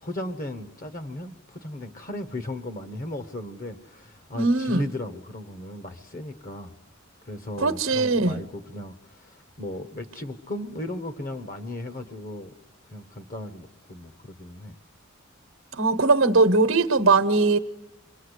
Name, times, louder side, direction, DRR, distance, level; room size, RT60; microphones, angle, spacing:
voice 1, 0.0-6.7 7.3-12.5 12.9-14.8, left 1 dB, 40° left, 1.2 m, -36 dB
voice 2, 4.3-4.8 7.6-8.4 15.7-17.6, right 3 dB, 75° right, 1.1 m, -20 dB
28.5 x 23.0 x 8.2 m
head